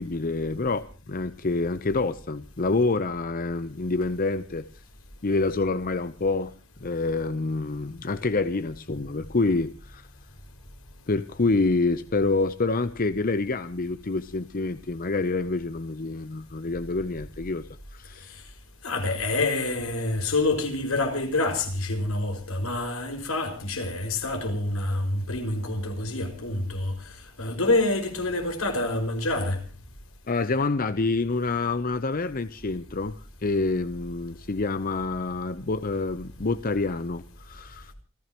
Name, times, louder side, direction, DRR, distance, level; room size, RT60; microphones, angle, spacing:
voice 1, 0.0-4.7 5.2-6.5 6.8-10.1 11.1-18.3 30.3-37.9, left 3 dB, 40° left, 0.7 m, -27 dB
voice 2, 18.8-27.0 27.4-29.6, left 2 dB, 80° left, 5.5 m, -27 dB
28.5 x 15.5 x 3.0 m
head